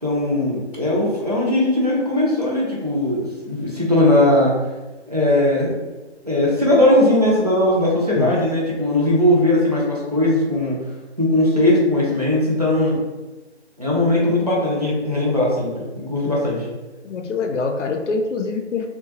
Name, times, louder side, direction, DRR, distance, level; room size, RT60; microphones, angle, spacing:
voice 1, 0.0-4.5 5.1-5.8 6.2-10.8 11.2-13.0 13.8-16.7, left 1 dB, 35° right, -6 dB, 0.5 m, -19 dB
voice 2, 17.0-18.9, left 4 dB, 85° left, 4 dB, 0.6 m, -24 dB
2.7 x 2.2 x 2.7 m, 1.1 s
hypercardioid pair, 180°, 35 cm